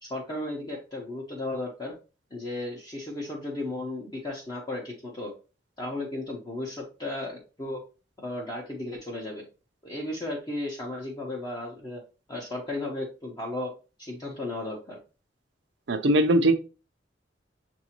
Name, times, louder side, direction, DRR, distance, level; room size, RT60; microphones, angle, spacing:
voice 1, 0.0-1.9 2.3-5.3 5.8-7.8 8.2-9.5 9.8-12.0 12.3-13.7 14.0-15.0, left 2 dB, 25° left, -3 dB, 0.8 m, -34 dB
voice 2, 15.9-16.5, right 1 dB, 70° right, 8 dB, 0.6 m, -20 dB
6.6 x 2.6 x 2.9 m, 0.32 s
head